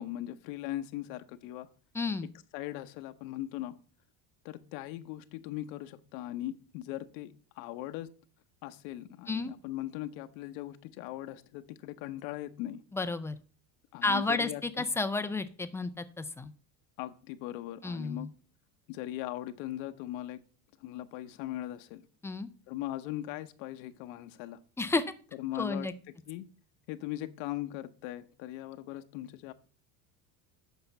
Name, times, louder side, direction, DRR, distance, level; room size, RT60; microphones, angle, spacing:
voice 1, 0.0-1.7 2.5-3.8 4.4-8.1 8.6-12.8 13.9-14.8 17.0-18.3 18.9-20.4 20.8-22.0 22.7-24.6 25.4-25.9 26.3-26.5 26.9-29.5, left 14 dB, 80° left, 8 dB, 0.9 m, -39 dB
voice 2, 1.9-2.3 9.3-9.6 12.9-13.4 14.0-16.5 17.8-18.3 22.2-22.5 24.8-25.0 25.5-25.9, left 3 dB, 10° left, 9 dB, 0.3 m, -31 dB
8.1 x 5.6 x 5.3 m, 0.39 s
cardioid pair, 150°, 37 cm